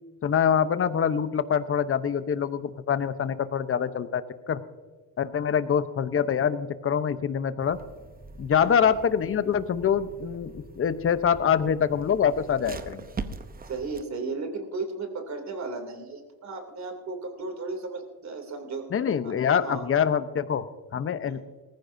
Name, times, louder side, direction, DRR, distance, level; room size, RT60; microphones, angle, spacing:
voice 1, 0.2-4.2 4.5-4.6 5.2-7.8 8.4-13.0 18.9-20.6 20.9-21.4, left 7 dB, 30° left, 12 dB, 0.9 m, -25 dB
sound 1, 7.6-14.0, right 4 dB, 20° right, 0.8 m, -42 dB
voice 2, 13.6-18.9 19.2-19.9 21.3-21.4, right 3 dB, 40° right, 6 dB, 2.9 m, -35 dB
18.5 x 15.0 x 2.7 m, 1.4 s
cardioid pair, 100°, 41 cm